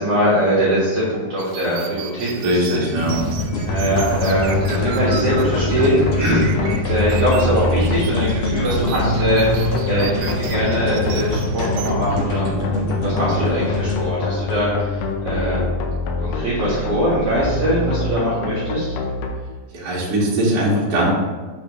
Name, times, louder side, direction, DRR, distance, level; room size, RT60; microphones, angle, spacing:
voice 1, 0.0-2.8 3.7-12.5 13.0-15.6 16.2-18.9, equal, 55° right, -7 dB, 1.9 m, -21 dB
sound 1, 1.4-11.9, right 8 dB, 80° right, 2.7 m, -36 dB
voice 2, 2.4-3.2 19.7-21.1, right 1 dB, 40° right, -6 dB, 1.5 m, -20 dB
sound 2, 2.9-15.2, left 1 dB, 60° left, 1.3 m, -26 dB
sound 3, 3.7-19.3, left 3 dB, 85° left, 3.0 m, -25 dB
8.5 x 6.0 x 3.2 m, 1.3 s
omnidirectional pair, 4.9 m